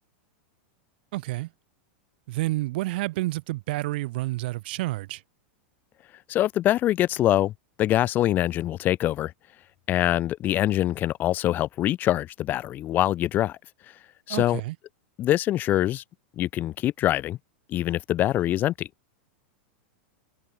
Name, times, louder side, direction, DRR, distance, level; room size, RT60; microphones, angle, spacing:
voice 1, 1.1-1.5 2.3-5.2 14.3-14.8, right 19 dB, 65° right, 3.6 m, -29 dB
voice 2, 6.3-7.5 7.8-9.3 9.9-13.6 14.3-14.6 15.2-16.0 16.4-17.4 17.7-18.9, left 13 dB, 30° left, 0.8 m, -24 dB
supercardioid pair, 135°, 6 cm